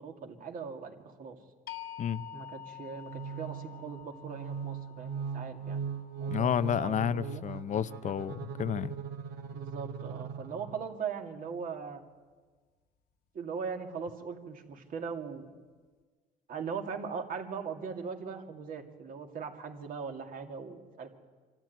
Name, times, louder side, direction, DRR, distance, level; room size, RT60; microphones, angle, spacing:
voice 1, 0.0-1.4 2.3-5.8 6.2-7.4 9.5-12.0 13.3-15.5 16.5-21.2, right 6 dB, 55° right, 2.4 m, -40 dB
sound 1, 1.7-7.6, left 10 dB, 65° left, 1.4 m, -48 dB
sound 2, 3.0-11.0, right 6 dB, 80° right, 2.1 m, -40 dB
voice 2, 6.3-8.9, left 9 dB, 45° left, 0.6 m, -31 dB
25.5 x 13.5 x 9.2 m
cardioid pair, 110°, 17 cm